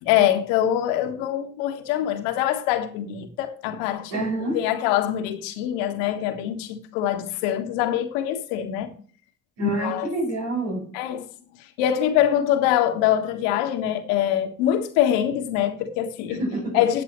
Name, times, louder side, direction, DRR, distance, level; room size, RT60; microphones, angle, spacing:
voice 1, 0.0-4.2 4.5-8.9 9.6-10.1 10.9-11.3 11.8-16.4 16.7-17.0, left 11 dB, 75° left, 1.6 m, -24 dB
voice 2, 4.1-4.6 9.6-10.9 16.4-16.8, right 2 dB, 70° right, 6.0 m, -27 dB
13.5 x 8.2 x 3.1 m
hypercardioid pair, 70°, 37 cm